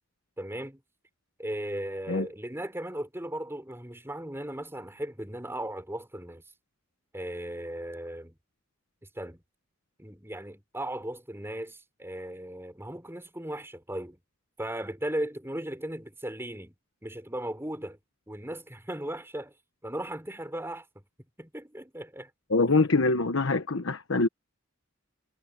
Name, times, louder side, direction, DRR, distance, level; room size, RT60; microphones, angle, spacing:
voice 1, 0.4-0.8 1.4-6.4 7.1-8.4 9.2-9.4 10.0-14.2 14.6-16.8 17.0-18.0 18.3-19.5 19.8-20.9 21.4-22.3, right 1 dB, 10° right, 6.8 m, -37 dB
voice 2, 22.5-24.3, left 3 dB, 70° left, 1.2 m, -24 dB
head